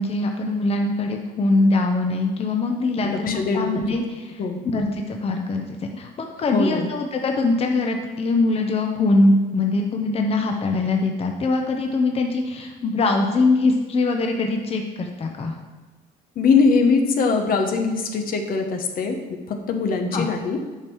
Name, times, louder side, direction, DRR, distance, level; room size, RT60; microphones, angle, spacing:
voice 1, 0.0-15.6 20.1-20.3, left 2 dB, 35° left, 3 dB, 0.9 m, -22 dB
voice 2, 3.0-4.0 4.4-4.6 6.5-6.9 16.4-20.6, left 4 dB, 60° left, 4 dB, 1.0 m, -22 dB
8.7 x 5.4 x 4.7 m, 1.2 s
cardioid pair, 110°, 17 cm